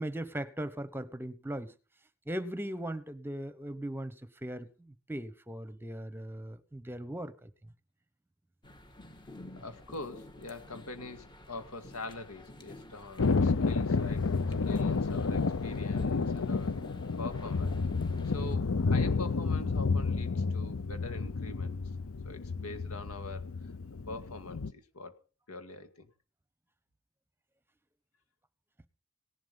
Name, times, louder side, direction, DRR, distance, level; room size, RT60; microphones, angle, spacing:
voice 1, 0.0-1.7 2.3-7.7 18.4-18.5, right 1 dB, 10° right, 1.1 m, -39 dB
sound 1, 8.6-18.5, left 1 dB, 20° left, 1.8 m, -51 dB
voice 2, 9.6-14.2 14.6-16.7 17.2-17.7 18.3-21.8 22.2-23.5 24.1-25.2 25.5-26.1, left 2 dB, 85° left, 2.2 m, -44 dB
Thunder, 13.2-24.7, left 4 dB, 65° left, 0.7 m, -30 dB
17.5 x 11.5 x 5.5 m
head